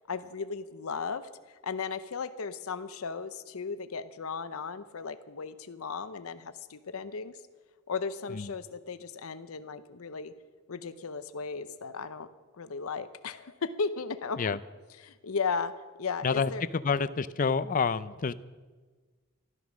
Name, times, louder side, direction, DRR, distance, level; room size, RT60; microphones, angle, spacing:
voice 1, 0.1-7.4 7.9-10.3 10.7-12.3 12.6-14.6 15.0-15.7 16.0-16.6, left 5 dB, 85° left, 12 dB, 0.7 m, -36 dB
voice 2, 16.8-18.3, left 5 dB, 40° left, 16 dB, 0.4 m, -28 dB
13.0 x 13.0 x 6.2 m, 1.3 s
head